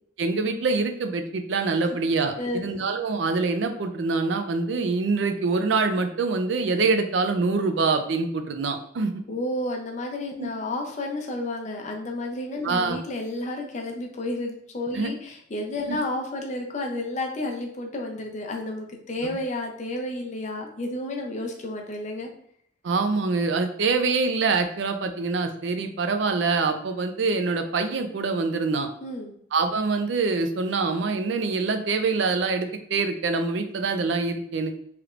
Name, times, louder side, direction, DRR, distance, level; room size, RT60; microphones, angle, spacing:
voice 1, 0.2-9.2 10.4-10.5 12.6-13.0 14.9-15.1 15.9-16.0 22.8-28.9 29.5-34.7, right 4 dB, 70° right, 7 dB, 0.4 m, -25 dB
voice 2, 2.4-2.7 9.3-22.3 29.0-29.4, left 1 dB, 40° left, 2 dB, 0.6 m, -31 dB
3.2 x 3.1 x 2.4 m, 0.67 s
head